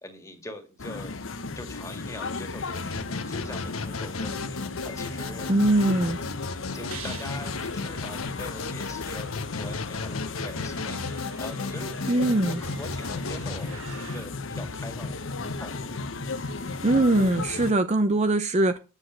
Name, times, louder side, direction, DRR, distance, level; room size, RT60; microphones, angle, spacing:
voice 1, 0.0-1.1 1.6-5.5 6.2-15.9, left 1 dB, 15° left, 2.0 m, -43 dB
sound 1, 0.8-17.7, left 3 dB, 60° left, 0.9 m, -35 dB
sound 2, 2.7-13.6, left 4 dB, 80° left, 1.2 m, -35 dB
sound 3, 4.9-14.2, right 5 dB, 75° right, 2.2 m, -48 dB
voice 2, 5.5-6.2 12.1-12.6 16.8-18.8, right 2 dB, 30° right, 0.6 m, -22 dB
9.7 x 6.8 x 6.3 m
head